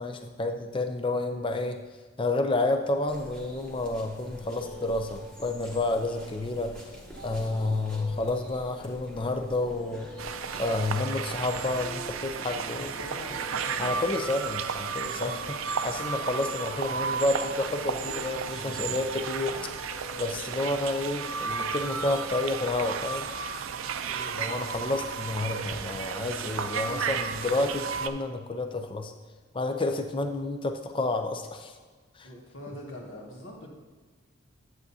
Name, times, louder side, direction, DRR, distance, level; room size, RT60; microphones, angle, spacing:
voice 1, 0.0-1.8 2.2-6.7 7.2-10.1 10.6-12.9 13.8-15.6 15.8-19.5 20.2-23.3 24.3-29.1 29.5-31.7 32.2-32.3, left 2 dB, 25° left, 6 dB, 0.5 m, -30 dB
sound 1, 2.4-22.3, left 3 dB, 50° left, 1.2 m, -48 dB
sound 2, 3.1-11.1, right 1 dB, 5° left, 1.2 m, -47 dB
sound 3, 10.2-28.1, right 6 dB, 75° right, 0.5 m, -33 dB
voice 2, 11.5-11.9 12.5-14.2 15.1-15.4 18.5-19.0 19.5-19.6 24.1-24.4 32.2-33.7, left 1 dB, 65° left, -2 dB, 1.9 m, -43 dB
11.0 x 7.8 x 2.8 m, 1.4 s
head